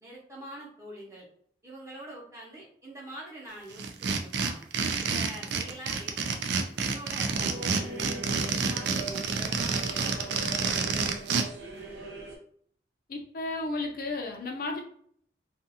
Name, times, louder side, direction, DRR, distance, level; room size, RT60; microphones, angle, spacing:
voice 1, 0.0-1.3 1.6-4.6 5.0-6.5 6.8-11.1, right 1 dB, 15° right, -4 dB, 0.8 m, -45 dB
sound 1, 3.8-11.4, right 5 dB, 70° right, 0.4 m, -28 dB
sound 2, 7.3-12.4, right 2 dB, 85° right, 0.8 m, -41 dB
voice 2, 13.1-14.8, left 2 dB, 55° left, 2 dB, 0.4 m, -33 dB
2.5 x 2.4 x 2.7 m, 0.62 s
head